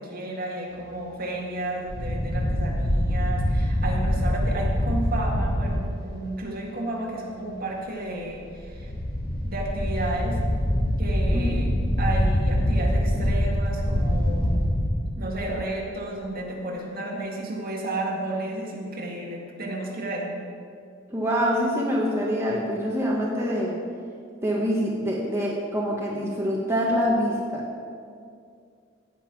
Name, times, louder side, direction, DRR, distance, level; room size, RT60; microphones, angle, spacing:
voice 1, 0.0-8.9 9.4-10.4 11.0-11.7 12.0-14.6 15.2-20.4, right 1 dB, 45° right, -1 dB, 2.0 m, -32 dB
sound 1, 1.9-5.8 8.6-15.9, equal, 50° left, 1.8 m, -24 dB
voice 2, 21.1-23.7 24.4-27.6, equal, 15° right, -4 dB, 1.2 m, -25 dB
16.5 x 5.7 x 6.0 m, 2.3 s
head